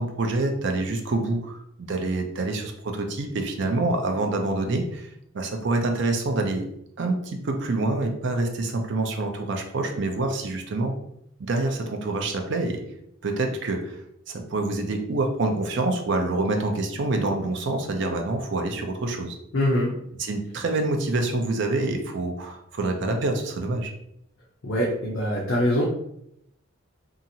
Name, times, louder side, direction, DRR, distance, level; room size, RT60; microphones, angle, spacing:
voice 1, 0.0-5.1 5.3-6.7 7.0-10.9 11.4-12.8 13.2-14.0 14.3-19.4 20.2-23.9, right 2 dB, 60° right, 4 dB, 0.5 m, -26 dB
voice 2, 19.5-20.0 24.6-25.8, left 1 dB, 70° left, -3 dB, 0.6 m, -23 dB
2.8 x 2.5 x 2.7 m, 0.75 s
head